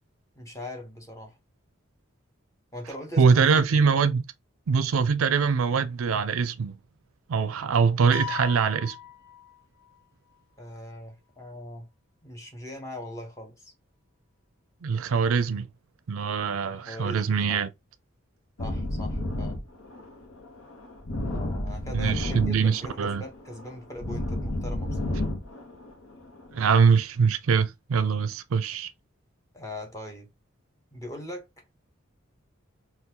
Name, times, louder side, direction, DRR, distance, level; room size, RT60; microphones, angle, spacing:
voice 1, 0.4-1.4 2.7-3.5 4.0-4.1 10.6-11.9 12.2-13.7 16.7-17.6 18.6-19.6 21.3-25.3 29.5-30.3 30.9-31.5, left 1 dB, 15° left, 0.9 m, -41 dB
voice 2, 3.2-4.2 4.7-6.7 7.3-9.0 14.8-15.7 16.1-17.7 21.9-23.2 26.5-28.9, right 5 dB, 85° right, 0.4 m, -23 dB
sound 1, 8.1-10.0, left 11 dB, 55° left, 0.6 m, -39 dB
sound 2, 18.6-26.6, left 1 dB, 80° left, 0.9 m, -32 dB
3.7 x 2.3 x 2.8 m
head